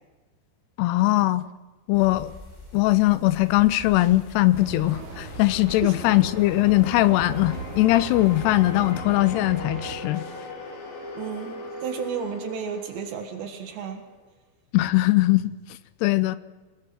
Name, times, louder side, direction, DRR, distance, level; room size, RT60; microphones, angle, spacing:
voice 1, 0.8-1.5 1.9-2.3 2.7-10.2 14.7-15.5 16.0-16.4, left 17 dB, 80° left, 2.8 m, -20 dB
sound 1, 1.9-8.9, left 1 dB, 5° left, 3.7 m, -47 dB
sound 2, 3.8-14.2, left 2 dB, 55° left, 5.3 m, -39 dB
sound 3, 4.5-10.0, right 4 dB, 50° right, 3.3 m, -39 dB
voice 2, 11.2-14.0, right 7 dB, 80° right, 3.8 m, -33 dB
29.0 x 18.5 x 6.1 m
omnidirectional pair, 4.9 m